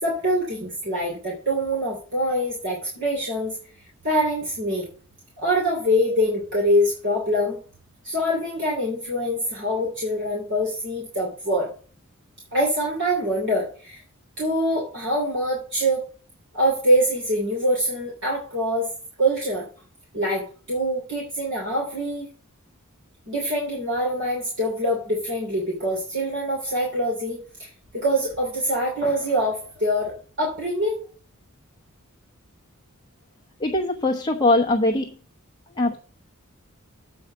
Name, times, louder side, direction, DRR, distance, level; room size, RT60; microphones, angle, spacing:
voice 1, 0.0-3.5 4.0-4.9 5.4-7.6 8.0-11.7 12.5-14.0 14.4-16.0 16.5-18.9 19.2-19.7 20.1-22.3 23.3-31.0, equal, 60° right, -3 dB, 3.1 m, -24 dB
voice 2, 33.6-35.2 35.7-36.0, left 2 dB, 20° left, 0 dB, 0.9 m, -21 dB
8.5 x 4.8 x 7.3 m, 0.40 s
head